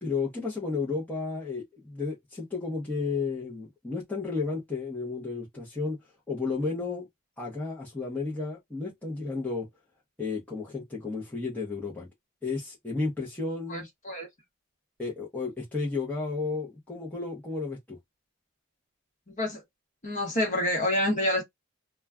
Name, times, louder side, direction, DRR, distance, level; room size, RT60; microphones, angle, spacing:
voice 1, 0.0-6.0 6.3-7.1 7.4-9.7 10.2-12.1 12.4-13.9 15.0-18.0, left 4 dB, 5° left, 0.7 m, -32 dB
voice 2, 13.7-14.3 19.3-19.6 20.0-21.4, left 1 dB, 35° left, 1.0 m, -28 dB
2.2 x 2.2 x 3.5 m
head